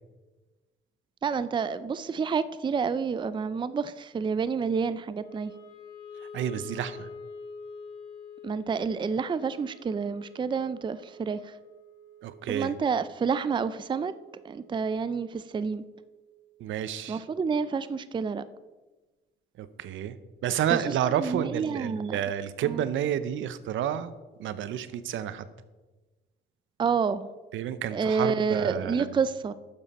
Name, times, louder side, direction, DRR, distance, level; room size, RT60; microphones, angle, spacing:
voice 1, 1.2-5.5 8.4-11.5 12.5-14.1 14.4-15.8 17.1-18.4 20.7-20.8 21.2-22.2 22.7-22.8 26.8-27.3 27.9-29.5, right 5 dB, 25° right, 14 dB, 0.4 m, -29 dB
Wind instrument woodwind instrument, 5.2-17.4, left 3 dB, 20° left, 3.4 m, -48 dB
voice 2, 6.1-7.1 12.2-12.7 16.6-17.3 19.6-20.2 20.4-24.1 24.4-25.5 27.5-29.1, right 10 dB, 75° right, 13 dB, 0.7 m, -30 dB
11.5 x 7.2 x 4.2 m, 1.2 s
cardioid pair, 90°, 20 cm